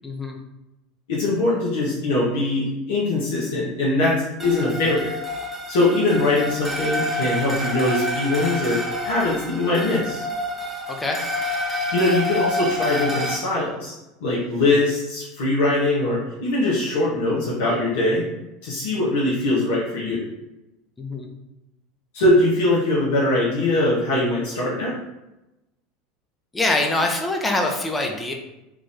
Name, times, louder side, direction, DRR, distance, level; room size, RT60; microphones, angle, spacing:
voice 1, 0.0-0.4 10.9-11.3 21.0-21.3 26.5-28.3, left 2 dB, 15° left, 2 dB, 0.7 m, -24 dB
voice 2, 1.1-5.1 5.7-10.2 11.9-13.9 14.2-18.3 18.6-20.2 22.1-24.9, left 2 dB, 75° left, -6 dB, 1.0 m, -22 dB
sound 1, 4.4-13.4, left 1 dB, 10° right, 1.0 m, -28 dB
3.6 x 2.6 x 3.5 m, 0.96 s
hypercardioid pair, 85°, 0 cm